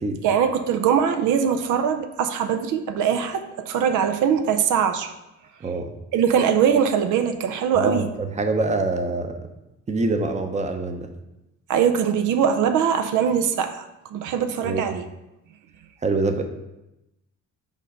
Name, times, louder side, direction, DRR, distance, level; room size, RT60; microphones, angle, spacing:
voice 1, 0.2-5.1 6.1-8.1 11.7-13.8 14.1-15.0, right 7 dB, 80° right, 7 dB, 0.6 m, -22 dB
voice 2, 7.7-9.3 9.9-11.1 14.6-14.8 16.0-16.4, right 3 dB, 25° right, 6 dB, 0.7 m, -25 dB
5.5 x 3.9 x 4.9 m, 0.93 s
cardioid pair, 90°, 30 cm